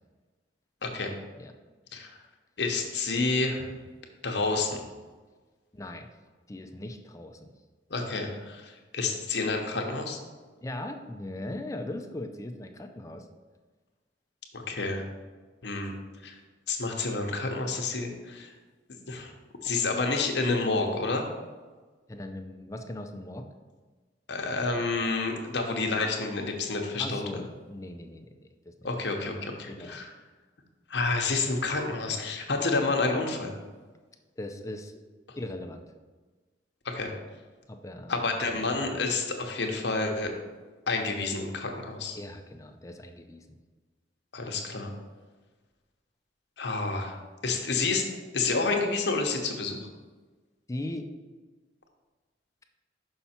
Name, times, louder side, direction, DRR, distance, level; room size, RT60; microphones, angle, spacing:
voice 1, 0.8-1.1 1.9-2.1 2.6-3.7 4.2-4.8 7.9-10.2 14.5-15.0 15.6-15.9 16.2-16.3 16.7-18.5 19.1-19.3 19.6-21.2 24.3-27.2 28.8-30.1 30.9-33.5 36.8-37.1 38.1-40.3 40.9-42.2 44.3-44.9 46.6-47.2 47.4-48.1 48.3-49.8, left 3 dB, 70° left, 3 dB, 0.9 m, -29 dB
voice 2, 5.7-6.1 6.5-7.5 10.6-13.3 22.1-23.5 27.0-28.3 28.7-28.9 29.7-30.0 34.4-34.9 35.4-35.8 37.7-38.1 38.4-38.9 42.1-43.6 50.7-51.1, left 1 dB, 15° left, 5 dB, 0.4 m, -39 dB
5.7 x 5.7 x 4.3 m, 1.3 s
head